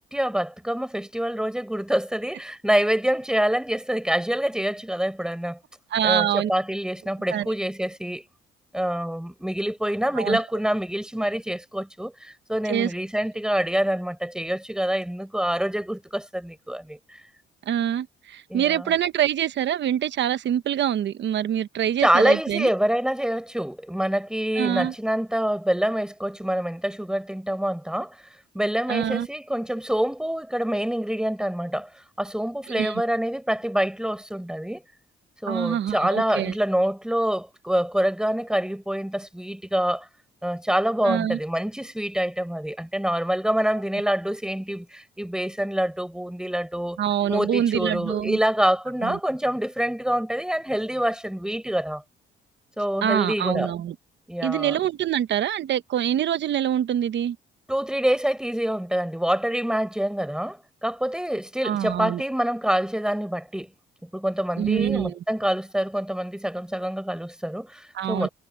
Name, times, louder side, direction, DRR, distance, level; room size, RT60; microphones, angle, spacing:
voice 1, 0.0-5.6 6.0-8.3 8.7-17.0 18.5-18.9 22.0-28.3 28.5-34.8 35.4-40.1 40.4-47.0 47.3-52.0 52.8-53.7 54.3-54.8 57.7-63.7 64.0-68.3, equal, 5° right, 5.8 m, -26 dB
voice 2, 5.9-6.5 7.3-7.5 10.2-10.4 12.7-12.9 17.7-22.7 24.6-24.9 28.9-29.3 32.7-32.9 35.5-36.5 41.0-41.4 47.0-48.4 49.0-49.2 53.0-53.9 54.4-57.4 61.6-62.2 64.6-65.2 67.9-68.3, right 10 dB, 65° right, 1.1 m, -25 dB
cardioid pair, 90°, 20 cm